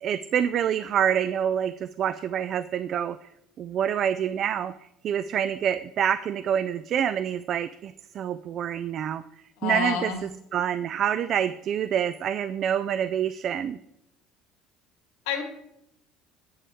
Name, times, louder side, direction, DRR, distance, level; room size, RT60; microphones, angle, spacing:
voice 1, 0.0-3.2 3.6-4.7 5.0-9.2 9.6-13.8, right 9 dB, 45° right, 13 dB, 0.3 m, -27 dB
voice 2, 9.6-10.2 15.3-15.4, left 8 dB, 90° left, 3 dB, 1.9 m, -28 dB
8.5 x 8.4 x 3.5 m, 0.79 s
cardioid pair, 130°, 0 cm